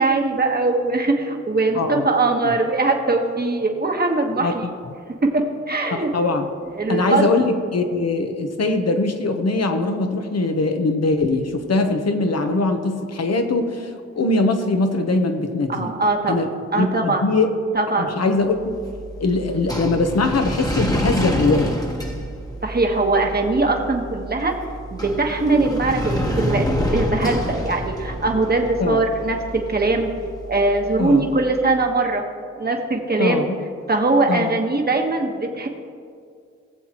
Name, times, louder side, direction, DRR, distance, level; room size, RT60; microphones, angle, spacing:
voice 1, 0.0-4.7 5.2-6.1 6.7-7.2 15.7-16.3 16.7-17.2 17.7-18.2 22.6-24.5 24.9-30.1 30.5-32.2 32.5-33.5 33.9-35.7, right 3 dB, 35° right, 2 dB, 1.4 m, -21 dB
voice 2, 1.7-2.1 2.4-2.5 4.4-4.5 6.1-6.5 6.9-15.9 16.3-16.5 16.8-17.5 18.0-18.6 19.2-21.7 28.8-29.0 31.0-31.2 33.2-33.6 34.3-34.6, left 3 dB, 60° left, 6 dB, 1.1 m, -21 dB
sound 1, 18.6-31.7, equal, 10° left, 1.3 m, -28 dB
18.5 x 7.3 x 3.0 m, 2.2 s
cardioid pair, 55°, 29 cm